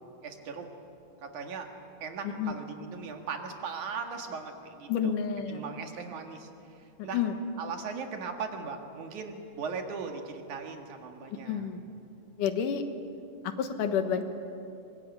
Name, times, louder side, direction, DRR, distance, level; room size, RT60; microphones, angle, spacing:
voice 1, 0.2-0.7 1.2-1.7 2.0-5.1 5.5-6.5 6.7-7.2 7.6-11.6, right 5 dB, 70° right, 4 dB, 3.3 m, -38 dB
voice 2, 4.9-5.7 7.0-7.4 11.5-11.8 12.4-12.8 13.4-14.2, left 7 dB, 80° left, 7 dB, 2.9 m, -29 dB
23.0 x 22.0 x 9.5 m, 2.8 s
omnidirectional pair, 3.7 m